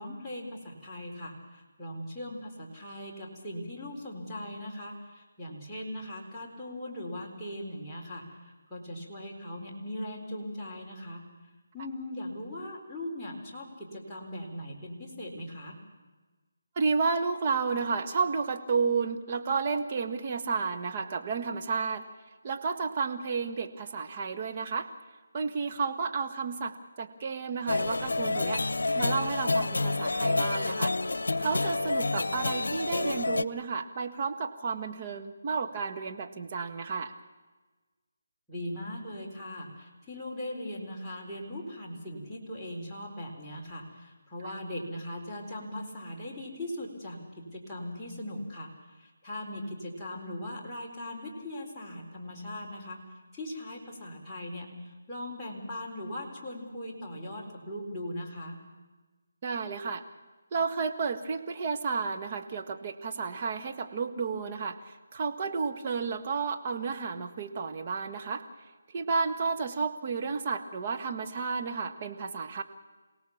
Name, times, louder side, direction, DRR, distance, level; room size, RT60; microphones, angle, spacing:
voice 1, 0.0-11.2 11.7-15.8 38.5-48.7 49.0-53.0 53.3-58.6, left 1 dB, 5° left, -9 dB, 3.9 m, -39 dB
voice 2, 16.8-22.0 22.4-24.9 25.3-28.6 28.9-30.9 31.4-37.1 59.4-60.0 60.5-64.8 65.1-68.4 68.9-72.6, right 5 dB, 35° right, 5 dB, 1.5 m, -31 dB
sound 1, 27.7-33.4, left 2 dB, 80° left, 0.8 m, -28 dB
27.5 x 17.5 x 7.1 m, 1.3 s
figure-of-eight pair, 160°, 0 cm